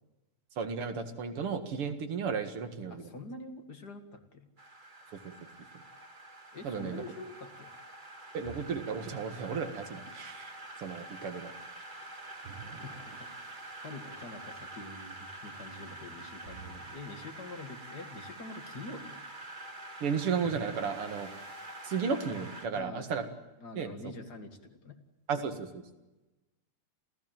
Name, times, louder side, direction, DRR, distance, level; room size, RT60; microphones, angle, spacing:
voice 1, 0.6-3.1 6.6-7.0 8.3-11.5 20.0-21.3 21.8-23.3 23.8-23.9 25.3-25.8, right 6 dB, 85° right, 8 dB, 2.9 m, -34 dB
voice 2, 2.9-4.5 6.5-7.7 12.8-19.2 22.7-23.1 23.6-25.0, left 2 dB, 50° left, 7 dB, 2.5 m, -46 dB
sound 1, 4.6-22.7, right 2 dB, 25° right, 1.9 m, -47 dB
sound 2, 8.4-9.9 12.4-13.9 16.4-17.8 20.4-22.0, right 6 dB, 60° right, 2.3 m, -51 dB
28.0 x 15.5 x 9.1 m, 1.1 s
omnidirectional pair, 2.4 m